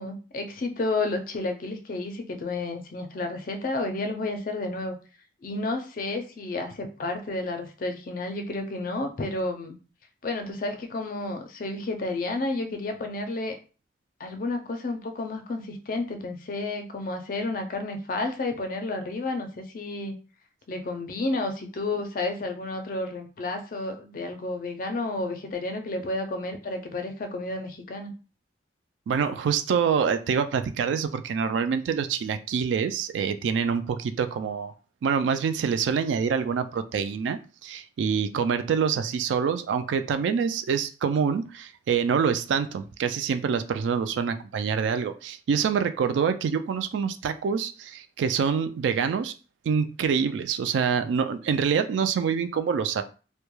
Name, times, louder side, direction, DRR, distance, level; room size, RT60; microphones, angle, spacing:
voice 1, 0.0-5.0 5.4-9.8 10.2-13.6 14.2-20.1 20.7-28.1, left 2 dB, 50° left, 0.4 m, -31 dB
voice 2, 29.1-34.7 35.0-49.3 49.7-53.0, right 6 dB, 85° right, 0.3 m, -26 dB
2.2 x 2.1 x 3.0 m
head